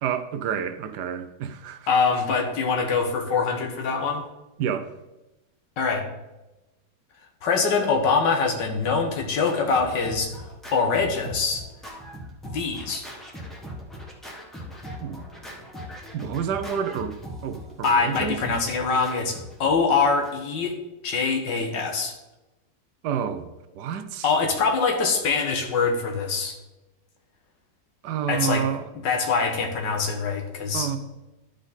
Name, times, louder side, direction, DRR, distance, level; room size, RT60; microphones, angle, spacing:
voice 1, 0.0-1.8 4.6-4.9 15.0-15.2 16.1-17.2 17.4-18.4 23.0-23.4 23.8-24.2 28.0-28.8 30.7-31.0, right 8 dB, 70° right, 1.2 m, -28 dB
voice 2, 1.9-4.2 5.8-6.1 7.4-10.3 10.7-11.6 12.4-13.0 17.8-20.7 21.0-22.1 24.2-26.5 28.3-28.7 28.9-31.0, left 4 dB, 75° left, 1.8 m, -24 dB
Scratching (performance technique), 8.5-20.6, equal, ahead, 1.1 m, -40 dB
12.0 x 5.1 x 4.0 m
omnidirectional pair, 2.0 m